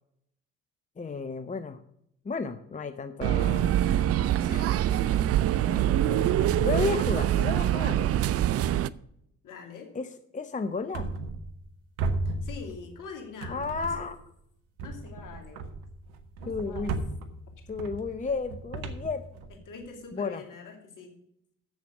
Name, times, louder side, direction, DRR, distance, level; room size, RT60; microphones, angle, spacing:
voice 1, 1.0-1.8 2.2-3.8 5.5-8.2 9.9-10.1 10.3-11.1 13.5-14.2 16.5-16.9 17.7-19.2 20.1-20.4, left 4 dB, 20° left, 9 dB, 0.7 m, -33 dB
sound 1, 3.2-8.9, right 12 dB, 40° right, 0.4 m, -24 dB
voice 2, 4.4-5.3 9.4-9.9 12.2-13.9 14.8-15.6 16.4-17.0 19.7-21.2, left 5 dB, 55° left, 2 dB, 2.7 m, -44 dB
sound 2, 10.9-11.7 12.0-13.1 13.4-14.2 14.8-19.9, right 3 dB, 70° right, 1.1 m, -35 dB
7.6 x 7.2 x 7.8 m, 0.75 s
hypercardioid pair, 45°, 38 cm